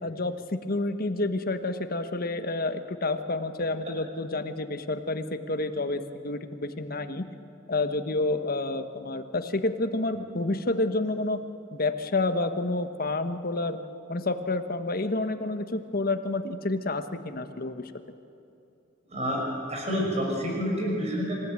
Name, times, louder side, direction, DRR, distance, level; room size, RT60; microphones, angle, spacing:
voice 1, 0.0-7.2 7.7-11.4 11.7-13.8 14.1-17.8, left 2 dB, 50° left, 8 dB, 1.2 m, -29 dB
voice 2, 19.1-19.4 19.7-21.3, equal, 35° right, -1 dB, 5.8 m, -28 dB
26.5 x 16.0 x 9.0 m, 2.8 s
head